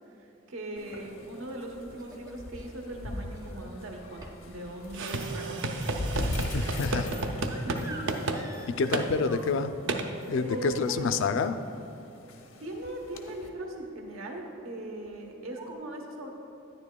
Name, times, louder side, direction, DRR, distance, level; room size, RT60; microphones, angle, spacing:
voice 1, 0.1-6.0 6.3-8.1 10.4-11.1 12.6-16.3, right 1 dB, 80° right, 1 dB, 0.9 m, -39 dB
sound 1, 0.8-13.5, left 1 dB, 90° left, 0.8 m, -40 dB
sound 2, 1.2-2.7 3.3-3.8 4.2-4.6 4.9-9.8 10.3-11.4 12.2-12.3 12.6-12.8 13.2-13.6 13.9-14.1 15.1-15.2 15.5-15.7, right 2 dB, 20° right, 0.5 m, -49 dB
sound 3, 4.9-7.8 8.1-8.4 8.9-9.1 9.9-10.1, right 3 dB, 65° right, 0.5 m, -31 dB
voice 2, 6.5-7.1 8.8-9.7 10.3-11.6, left 4 dB, 65° left, 10 dB, 0.4 m, -28 dB
10.0 x 9.8 x 2.2 m, 2.8 s
head